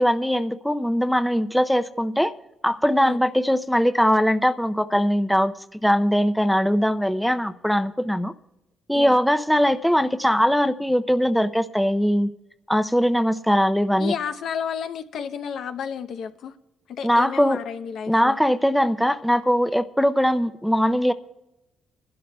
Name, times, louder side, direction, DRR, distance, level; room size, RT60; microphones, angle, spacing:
voice 1, 0.0-2.3 2.6-8.3 8.9-12.3 12.7-14.1 17.0-17.6 18.1-21.1, equal, ahead, 0.5 m, -21 dB
voice 2, 14.0-16.5 16.9-18.4, left 7 dB, 70° left, 0.7 m, -31 dB
25.0 x 12.0 x 2.3 m
cardioid pair, 90°, 0 cm